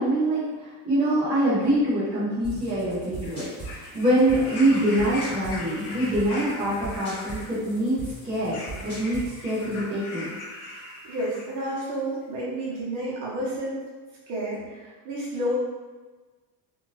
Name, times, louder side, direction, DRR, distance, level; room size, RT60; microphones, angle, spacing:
voice 1, 0.0-10.3, right 1 dB, 10° right, -13 dB, 0.4 m, -25 dB
sound 1, 2.4-9.8, right 3 dB, 10° left, 1.1 m, -40 dB
sound 2, 3.1-11.8 12.7-12.8, left 2 dB, 45° left, 0.5 m, -40 dB
voice 2, 10.7-13.8 14.3-15.5, right 1 dB, 40° right, -7 dB, 1.0 m, -31 dB
2.6 x 2.5 x 3.1 m, 1.3 s
cardioid pair, 180°, 49 cm